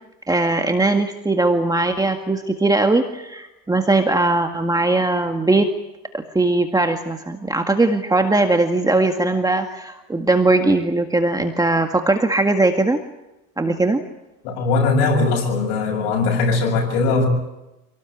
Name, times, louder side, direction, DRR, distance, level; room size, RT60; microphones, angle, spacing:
voice 1, 0.3-5.7 6.1-13.0 13.6-14.0, right 2 dB, 10° right, 5 dB, 1.9 m, -19 dB
voice 2, 14.4-17.3, left 3 dB, 90° left, 1 dB, 7.3 m, -20 dB
27.5 x 18.5 x 9.2 m, 0.96 s
cardioid pair, 115°, 35 cm